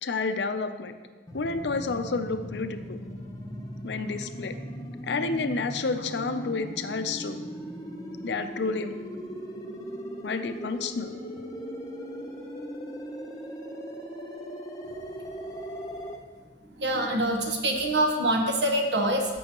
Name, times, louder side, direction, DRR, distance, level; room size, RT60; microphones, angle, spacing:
voice 1, 0.0-1.0 1.3-3.0 3.8-4.6 5.0-7.4 8.2-8.9 10.2-11.1, left 4 dB, 80° left, 9 dB, 0.6 m, -30 dB
sound 1, 1.3-16.2, equal, 20° left, 0.8 m, -38 dB
voice 2, 16.8-19.4, right 1 dB, 80° right, 2 dB, 1.3 m, -25 dB
14.0 x 6.2 x 3.0 m, 1.5 s
head